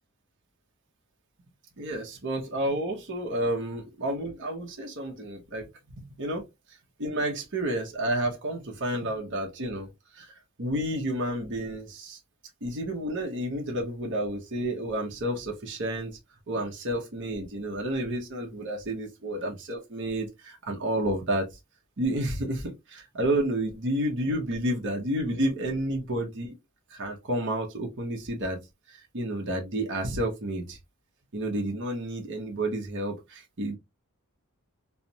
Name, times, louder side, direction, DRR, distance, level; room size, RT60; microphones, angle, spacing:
voice 1, 1.8-5.6 6.0-6.4 7.0-10.3 10.6-12.2 12.6-16.2 16.5-21.5 22.0-26.5 26.9-28.6 28.9-30.8 31.3-33.8, right 1 dB, 55° right, 0.8 m, -30 dB
3.2 x 2.0 x 2.7 m
head